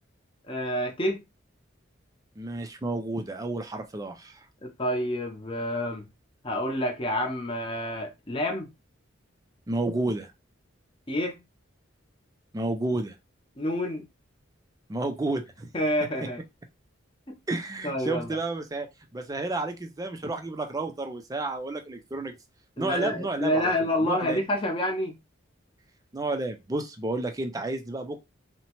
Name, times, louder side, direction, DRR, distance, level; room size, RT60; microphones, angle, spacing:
voice 1, 0.5-1.2 4.6-6.1 6.4-8.7 11.1-11.4 13.6-14.1 15.7-16.4 17.3-17.4 17.8-18.4 22.8-25.1, left 1 dB, 25° left, 0.6 m, -28 dB
voice 2, 2.4-4.4 9.7-10.3 12.5-13.2 14.9-15.7 17.5-18.9 19.1-22.3 22.8-24.4 26.1-28.2, right 2 dB, 20° right, 0.4 m, -31 dB
2.8 x 2.1 x 2.9 m
head